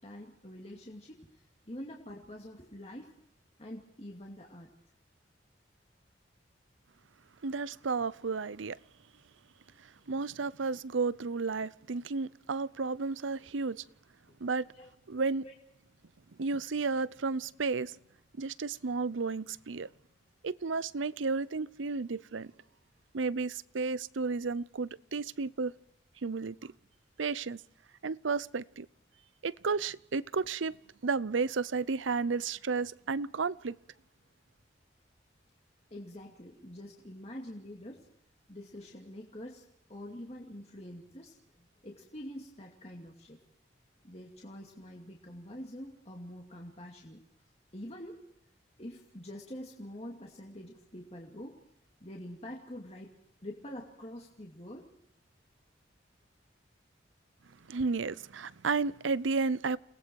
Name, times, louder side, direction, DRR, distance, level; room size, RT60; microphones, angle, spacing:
voice 1, 0.0-3.1 3.6-4.7 7.8-7.9 14.7-14.9 15.4-15.5 35.9-38.1 38.5-39.6 39.9-43.4 44.0-47.2 47.7-48.2 48.8-51.6 52.0-53.1 53.4-54.9, left 1 dB, 35° left, 2.5 m, -46 dB
voice 2, 7.4-8.8 9.8-13.8 14.4-14.7 15.1-15.4 16.4-18.0 18.4-19.9 20.4-22.5 23.1-25.7 26.2-26.7 27.2-27.6 28.0-28.9 29.4-30.8 31.0-33.8 57.7-59.8, right 4 dB, 85° right, 0.7 m, -32 dB
29.5 x 19.0 x 4.7 m
head